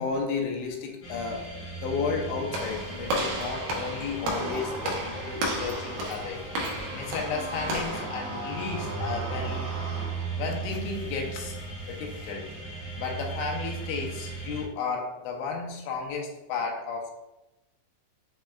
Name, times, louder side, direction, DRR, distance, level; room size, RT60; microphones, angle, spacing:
voice 1, 0.0-6.5 6.9-9.7 10.4-12.5 12.9-17.1, left 5 dB, 85° left, 1 dB, 3.0 m, -33 dB
sound 1, 1.0-14.6, right 4 dB, 70° left, 1.7 m, -37 dB
Walk footsteps / Slam, 2.5-8.1, right 1 dB, 85° right, 2.0 m, -33 dB
sound 2, 4.2-10.6, right 2 dB, 70° right, 2.6 m, -39 dB
7.1 x 3.2 x 2.3 m, 0.95 s
omnidirectional pair, 5.1 m